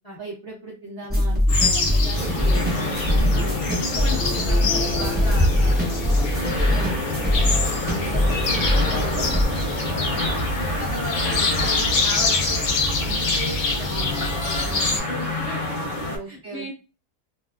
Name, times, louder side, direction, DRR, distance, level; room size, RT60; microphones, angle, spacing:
voice 1, 0.2-3.4 8.4-8.5 16.1-16.7, right 3 dB, 75° right, -2 dB, 0.6 m, -37 dB
sound 1, 1.1-9.4, left 1 dB, 15° right, 0.3 m, -23 dB
sound 2, 1.5-15.0, left 2 dB, 80° left, 0.5 m, -25 dB
sound 3, 2.2-16.2, left 2 dB, 55° left, 1.0 m, -29 dB
voice 2, 3.3-10.3 10.6-12.7 13.0-15.9 16.2-16.7, equal, 30° left, -5 dB, 0.8 m, -37 dB
2.8 x 2.0 x 2.3 m, 0.33 s
omnidirectional pair, 1.8 m